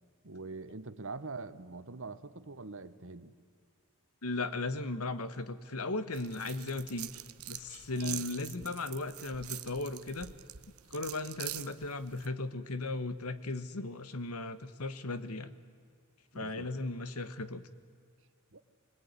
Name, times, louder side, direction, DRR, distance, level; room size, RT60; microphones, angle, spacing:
voice 1, 0.2-3.3 7.9-8.3 16.3-16.7 18.5-18.6, right 3 dB, 60° right, 13 dB, 1.3 m, -44 dB
voice 2, 4.2-7.1 7.5-10.3 10.9-15.5 16.3-17.6, left 2 dB, 85° left, 13 dB, 1.5 m, -36 dB
sound 1, 6.1-12.3, right 14 dB, 85° right, 1.0 m, -45 dB
25.5 x 20.5 x 9.8 m, 2.2 s
head